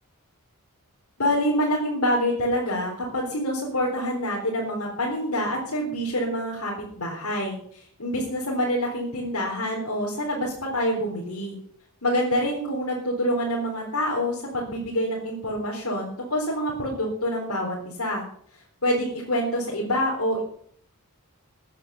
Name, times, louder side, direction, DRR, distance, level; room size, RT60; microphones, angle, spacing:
voice 1, 1.2-11.5 12.0-18.2 18.8-20.4, equal, 85° left, -3 dB, 4.0 m, -26 dB
14.5 x 9.6 x 6.9 m, 0.63 s
head